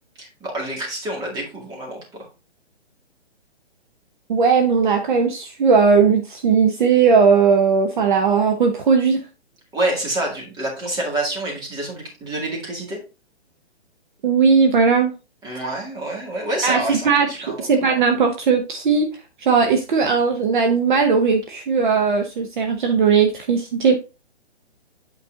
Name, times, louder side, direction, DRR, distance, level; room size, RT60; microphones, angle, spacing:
voice 1, 0.2-2.3 9.7-13.0 15.4-17.7, right 1 dB, 10° right, -1 dB, 2.0 m, -27 dB
voice 2, 4.3-9.2 14.2-15.1 16.6-19.1 19.4-24.0, right 5 dB, 45° right, 5 dB, 1.1 m, -18 dB
8.6 x 4.5 x 3.7 m, 0.30 s
hypercardioid pair, 155°, 34 cm